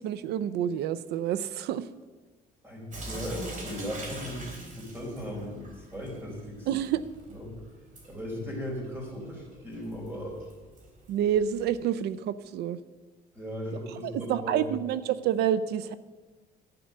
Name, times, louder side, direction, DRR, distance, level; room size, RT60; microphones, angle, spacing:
voice 1, 0.0-1.9 6.7-7.0 11.1-12.8 14.0-15.9, right 10 dB, 80° right, 16 dB, 0.6 m, -28 dB
voice 2, 2.6-6.7 7.3-7.6 8.1-10.4 13.3-14.7, equal, 10° right, -1 dB, 4.8 m, -37 dB
Sink (filling or washing) / Drip, 2.9-11.8, right 2 dB, 50° right, 3.5 m, -44 dB
11.5 x 9.3 x 6.6 m, 1.3 s
cardioid pair, 110°, 17 cm